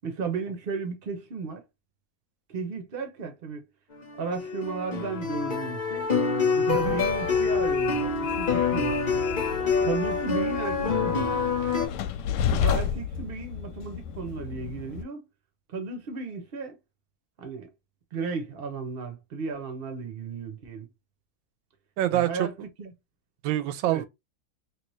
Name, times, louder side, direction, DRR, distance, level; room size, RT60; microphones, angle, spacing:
voice 1, 0.0-1.6 2.5-3.6 4.2-6.1 6.5-9.0 9.8-11.3 12.5-15.2 15.7-16.8 17.4-17.7 18.1-20.9 22.1-22.9 23.9-24.0, right 4 dB, 45° right, 0.7 m, -34 dB
sound 1, 3.9-11.9, left 5 dB, 50° left, 0.5 m, -26 dB
Train, 6.7-15.0, left 8 dB, 75° left, 1.1 m, -32 dB
voice 2, 6.7-7.0 22.0-22.5 23.4-24.1, right 13 dB, 90° right, 1.4 m, -26 dB
3.1 x 2.7 x 3.0 m
omnidirectional pair, 2.1 m